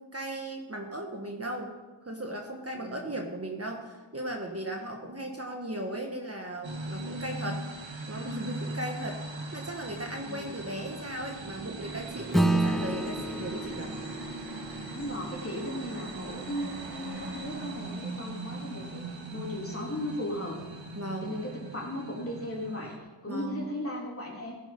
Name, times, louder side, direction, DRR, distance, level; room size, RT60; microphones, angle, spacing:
voice 1, 0.0-1.7 2.0-7.7 8.1-9.2 9.5-14.0 21.0-21.3 23.3-23.7, right 1 dB, 30° right, 1 dB, 1.5 m, -37 dB
voice 2, 2.8-3.1 5.0-5.3 10.3-10.5 14.9-20.6 21.2-22.9 23.2-24.6, left 1 dB, 30° left, -3 dB, 3.5 m, -36 dB
sound 1, 6.6-23.0, right 2 dB, 80° right, 1.4 m, -40 dB
sound 2, 11.8-18.0, right 1 dB, 60° right, 2.4 m, -48 dB
Acoustic guitar / Strum, 12.3-17.1, right 1 dB, ahead, 0.4 m, -31 dB
15.5 x 7.3 x 5.3 m, 1.3 s
wide cardioid pair, 60°, 45 cm